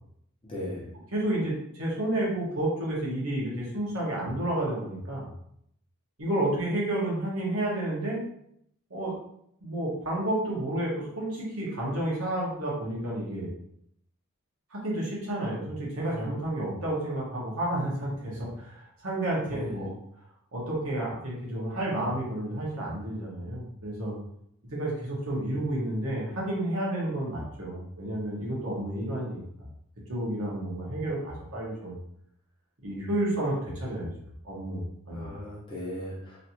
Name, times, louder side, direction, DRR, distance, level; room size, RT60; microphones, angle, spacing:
voice 1, 0.4-0.8 19.5-19.9 35.1-36.4, left 1 dB, 20° left, -6 dB, 0.8 m, -37 dB
voice 2, 1.1-5.3 6.2-8.2 8.9-9.1 9.6-13.5 14.7-19.9 20.5-24.1 24.7-29.4 30.1-32.0 32.8-34.1 34.4-35.3, right 1 dB, 65° right, -5 dB, 1.2 m, -31 dB
3.2 x 2.7 x 2.8 m, 0.72 s
head